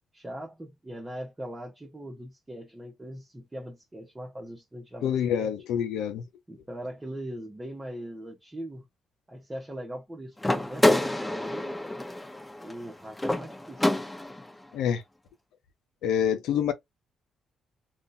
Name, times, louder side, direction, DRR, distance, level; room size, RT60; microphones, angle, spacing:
voice 1, 0.1-5.5 6.5-8.9 9.3-11.8 12.6-14.0, right 1 dB, 15° right, 1.1 m, -40 dB
voice 2, 5.0-6.2 14.7-15.0 16.0-16.7, left 8 dB, 85° left, 0.7 m, -26 dB
sound 1, 10.4-14.5, left 1 dB, 10° left, 1.0 m, -27 dB
3.7 x 2.5 x 2.7 m
cardioid pair, 90°, 0 cm